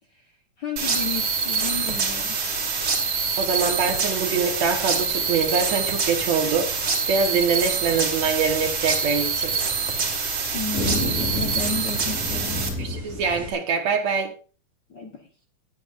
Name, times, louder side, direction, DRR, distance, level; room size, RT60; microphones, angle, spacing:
voice 1, 0.6-2.4 10.5-12.6 14.9-15.3, left 4 dB, 50° left, 1.3 m, -33 dB
sound 1, 0.8-12.7, right 5 dB, 45° right, 2.6 m, -25 dB
sound 2, 2.8-13.5, left 1 dB, 80° left, 5.6 m, -35 dB
voice 2, 3.4-6.7 7.1-9.5 12.8-14.3, right 5 dB, 65° right, 2.5 m, -24 dB
18.5 x 8.0 x 2.6 m
omnidirectional pair, 3.5 m